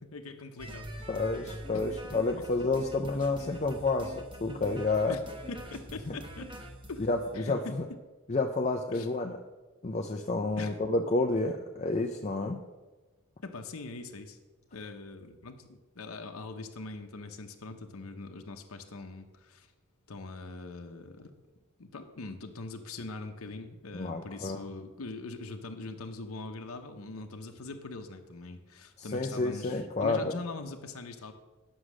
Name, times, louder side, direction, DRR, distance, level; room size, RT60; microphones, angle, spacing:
voice 1, 0.0-1.1 1.7-1.8 2.1-2.4 3.1-3.3 5.1-6.5 6.9-7.0 7.3-7.8 8.9-9.1 10.6-10.8 13.4-14.4 14.7-19.7 20.1-21.3 21.8-31.3, left 3 dB, 75° left, 5 dB, 0.8 m, -42 dB
sound 1, 0.6-7.2, equal, 20° right, 0.9 m, -44 dB
voice 2, 1.1-5.2 6.1-6.2 7.1-7.9 8.3-9.4 9.8-12.6 23.9-24.6 29.0-30.3, left 3 dB, 30° left, 3 dB, 0.5 m, -30 dB
9.9 x 6.3 x 6.2 m, 1.2 s
head